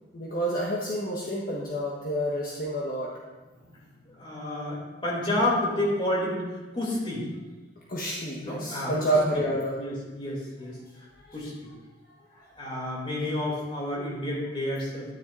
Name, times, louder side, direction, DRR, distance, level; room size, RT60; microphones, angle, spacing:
voice 1, 0.1-3.1 7.9-9.8 11.3-11.4, right 1 dB, 50° left, -4 dB, 1.3 m, -28 dB
voice 2, 4.1-6.4 6.7-7.3 8.4-9.1 9.7-11.1 11.3-11.5 12.6-15.2, left 1 dB, 30° left, -4 dB, 2.8 m, -30 dB
12.5 x 10.0 x 2.6 m, 1.2 s
head